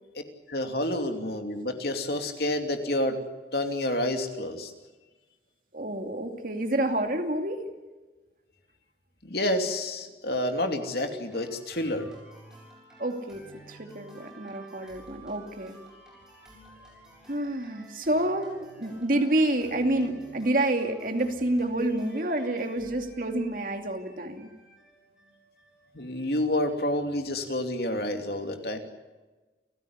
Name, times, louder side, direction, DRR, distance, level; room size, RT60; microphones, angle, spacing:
voice 1, 0.5-3.2 3.5-4.7 9.2-12.1 25.9-28.8, left 1 dB, 60° left, 5 dB, 2.9 m, -29 dB
voice 2, 5.7-7.6 13.0-13.4 13.7-15.8 17.3-24.5, right 1 dB, 50° right, 5 dB, 2.7 m, -28 dB
sound 1, 11.3-26.4, right 2 dB, 5° right, 7.4 m, -52 dB
29.5 x 15.5 x 9.8 m, 1.2 s
head